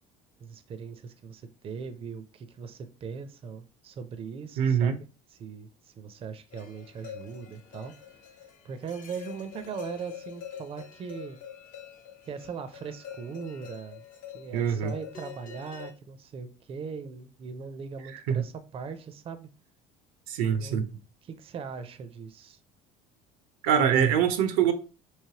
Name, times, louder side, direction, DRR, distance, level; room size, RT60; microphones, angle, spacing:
voice 1, 0.4-5.1 5.4-7.9 8.6-11.4 12.2-14.0 14.3-19.5 20.6-20.8 21.3-22.6, right 6 dB, 35° right, 0.5 m, -40 dB
voice 2, 4.6-5.0 14.5-14.9 18.1-18.5 20.3-20.9 23.6-24.7, right 8 dB, 90° right, 0.6 m, -24 dB
sound 1, 6.5-15.9, left 8 dB, 50° left, 0.7 m, -45 dB
3.2 x 3.0 x 2.8 m
supercardioid pair, 110°, 17 cm